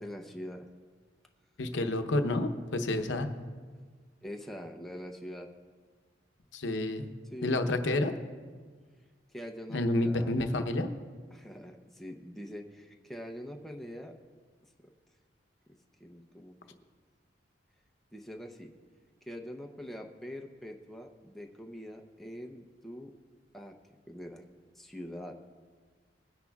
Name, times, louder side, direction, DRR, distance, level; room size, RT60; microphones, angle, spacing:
voice 1, 0.0-0.7 2.9-3.0 4.2-5.5 7.3-7.6 9.3-10.3 11.3-14.1 14.8-14.9 15.7-16.6 18.1-18.7 19.2-23.1 23.5-23.7 24.1-24.4 24.7-25.4, equal, ahead, 1 dB, 0.7 m, -44 dB
voice 2, 1.6-3.3 6.5-7.1 7.4-8.1 9.7-10.9, left 2 dB, 80° left, 7 dB, 0.8 m, -29 dB
20.5 x 10.0 x 2.4 m, 1.6 s
head